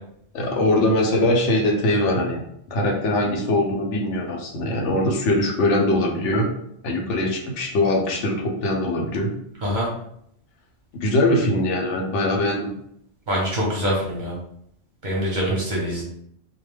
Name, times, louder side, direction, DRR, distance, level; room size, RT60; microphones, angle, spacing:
voice 1, 0.3-2.4 2.7-6.5 6.8-9.3 11.0-12.7 15.5-15.6, left 1 dB, 75° left, 0 dB, 0.9 m, -22 dB
voice 2, 13.3-14.3 15.0-16.0, equal, 50° right, -3 dB, 0.7 m, -24 dB
2.2 x 2.1 x 3.1 m, 0.72 s
omnidirectional pair, 1.2 m